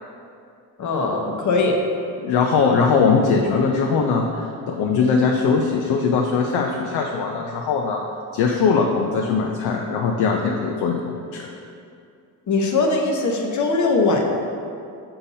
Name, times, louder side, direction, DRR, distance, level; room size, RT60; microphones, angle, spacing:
voice 1, 0.8-1.8 12.5-14.2, left 3 dB, 50° left, 1 dB, 0.9 m, -20 dB
voice 2, 2.2-8.0 8.3-11.5, left 5 dB, 75° left, 1 dB, 0.6 m, -20 dB
6.7 x 5.6 x 2.7 m, 2.5 s
cardioid pair, 105°, 39 cm